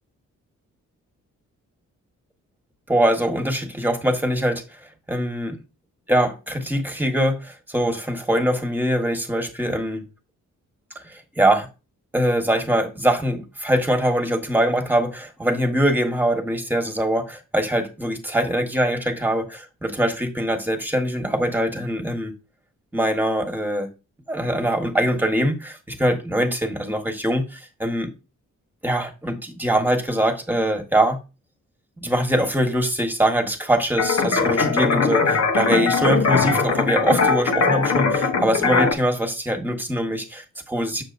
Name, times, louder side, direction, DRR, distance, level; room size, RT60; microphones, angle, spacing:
voice 1, 2.9-5.6 6.1-10.0 10.9-11.7 12.1-22.3 22.9-23.9 24.3-28.1 28.8-31.2 32.0-41.0, right 1 dB, 5° right, 1.6 m, -23 dB
sound 1, 34.0-38.9, left 4 dB, 55° left, 1.1 m, -20 dB
7.5 x 6.4 x 2.6 m
cardioid pair, 75°, 31 cm